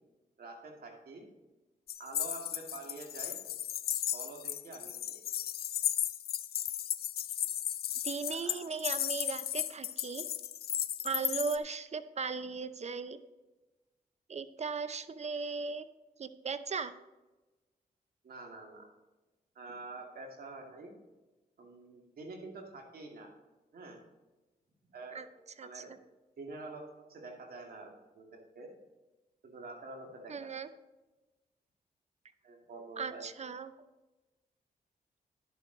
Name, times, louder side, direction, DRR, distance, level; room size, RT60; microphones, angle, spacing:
voice 1, 0.4-1.3 2.0-3.4 4.1-5.2 8.3-8.6 18.2-18.9 19.6-20.9 21.6-23.3 23.7-24.0 24.9-25.2 25.6-25.9 26.4-26.8 27.1-28.7 29.4-30.3 32.4-33.2, right 3 dB, 70° right, 2 dB, 2.2 m, -47 dB
sound 1, 1.9-11.6, left 11 dB, 80° left, 0.5 m, -35 dB
voice 2, 8.0-10.3 11.0-13.2 14.3-15.8 16.2-16.9 25.1-25.3 25.6-25.8 30.3-30.7 33.0-33.7, right 5 dB, 45° right, 12 dB, 0.7 m, -37 dB
11.0 x 7.2 x 3.9 m, 1.1 s
cardioid pair, 75°, 16 cm